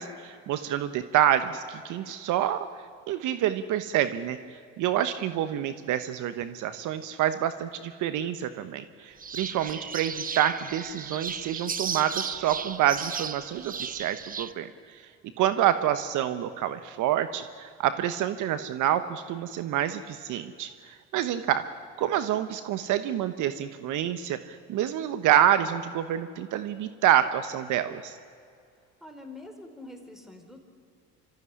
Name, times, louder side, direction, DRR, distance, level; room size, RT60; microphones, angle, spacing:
voice 1, 0.0-2.7 3.1-4.4 4.8-15.0 15.4-21.6 22.0-28.2, right 11 dB, 60° right, 11 dB, 1.1 m, -27 dB
sound 1, 9.2-14.5, right 6 dB, 25° right, 0.9 m, -35 dB
voice 2, 29.0-30.6, left 2 dB, ahead, 4 dB, 4.6 m, -45 dB
25.5 x 14.0 x 9.8 m, 2.3 s
hypercardioid pair, 75°, 34 cm